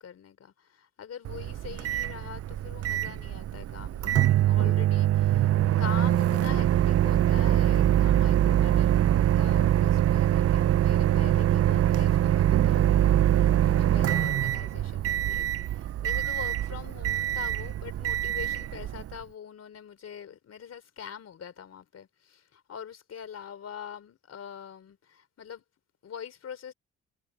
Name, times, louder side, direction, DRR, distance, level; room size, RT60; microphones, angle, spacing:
voice 1, 0.0-5.5 5.8-25.6 26.0-26.7, left 8 dB, 55° left, 3.8 m, -44 dB
Microwave oven, 1.2-19.2, right 12 dB, 50° right, 0.6 m, -24 dB
cardioid pair, 90°, 30 cm